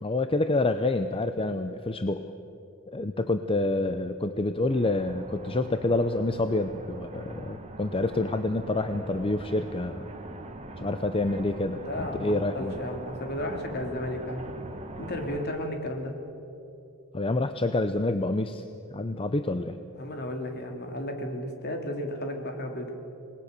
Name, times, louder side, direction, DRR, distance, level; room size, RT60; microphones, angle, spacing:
voice 1, 0.0-2.3 2.9-10.1 10.8-12.7 17.1-18.6 18.9-19.8, left 2 dB, 25° left, 9 dB, 0.6 m, -27 dB
sound 1, 4.7-15.5, right 2 dB, 30° right, 1.8 m, -42 dB
voice 2, 11.8-14.5 15.0-16.1 19.9-22.9, left 1 dB, 50° left, 3 dB, 2.9 m, -33 dB
26.5 x 20.0 x 6.8 m, 2.8 s
head